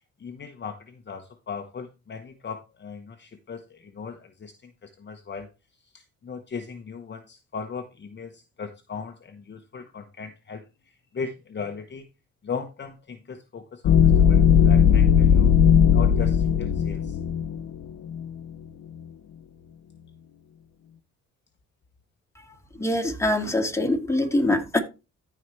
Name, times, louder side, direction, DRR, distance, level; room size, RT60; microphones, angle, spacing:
voice 1, 0.2-5.5 5.8-12.1 12.4-15.5 15.9-17.2, left 5 dB, 35° left, 1.1 m, -38 dB
sound 1, 13.8-18.4, left 8 dB, 65° left, 1.0 m, -18 dB
voice 2, 22.7-24.8, left 1 dB, 10° left, 2.3 m, -24 dB
14.5 x 4.9 x 3.2 m
cardioid pair, 90°, 30 cm